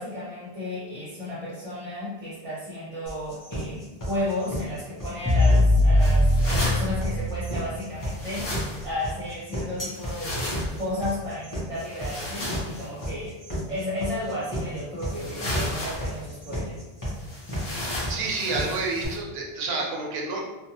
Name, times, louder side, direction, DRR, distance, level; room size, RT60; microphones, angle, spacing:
voice 1, 0.0-13.4 13.7-16.8, left 1 dB, 35° right, -9 dB, 0.8 m, -33 dB
sound 1, 3.1-19.1, equal, 20° left, 0.7 m, -33 dB
sound 2, 5.2-8.3, left 1 dB, ahead, 0.3 m, -21 dB
sound 3, 6.0-7.0 8.0-8.9 9.9-10.8 11.8-12.9 14.0-14.1 15.1-16.2 17.2-19.2, left 1 dB, 70° left, 0.9 m, -33 dB
voice 2, 18.1-20.4, right 3 dB, 75° right, -2 dB, 0.8 m, -29 dB
2.6 x 2.2 x 2.8 m, 1.1 s
omnidirectional pair, 1.0 m